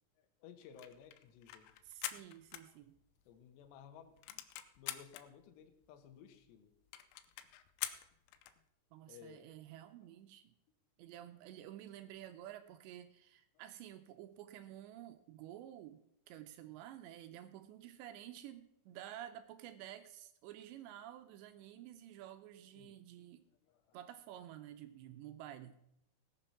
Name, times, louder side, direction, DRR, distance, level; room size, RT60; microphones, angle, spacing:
voice 1, 0.2-1.7 2.7-2.8 3.3-4.4 4.8-6.7 9.1-9.5 13.5-13.6 22.7-24.0, left 7 dB, 70° left, 6 dB, 3.1 m, -58 dB
sound 1, 0.6-3.3 3.7-3.8 4.0-5.2 5.8-5.9 6.1-6.2 6.5-6.6 6.9-8.6, left 13 dB, 85° left, 3.4 m, -45 dB
voice 2, 1.9-3.0 8.9-10.5 11.0-23.4 23.9-25.8, right 12 dB, 85° right, 8 dB, 2.6 m, -51 dB
18.5 x 6.9 x 5.8 m, 0.77 s
omnidirectional pair, 5.7 m